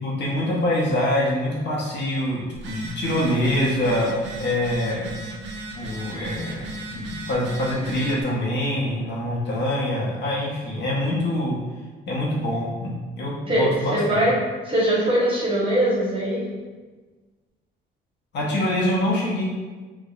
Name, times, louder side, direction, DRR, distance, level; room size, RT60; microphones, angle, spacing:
voice 1, 0.0-5.1 5.7-11.6 12.1-14.2 18.3-19.4, left 1 dB, 60° left, -4 dB, 0.7 m, -25 dB
Telephone, 2.5-8.2, right 2 dB, 65° right, 0.5 m, -36 dB
voice 2, 13.9-14.3 14.6-16.4, right 1 dB, 25° right, -6 dB, 0.9 m, -21 dB
2.6 x 2.1 x 2.4 m, 1.3 s
cardioid pair, 90°, 20 cm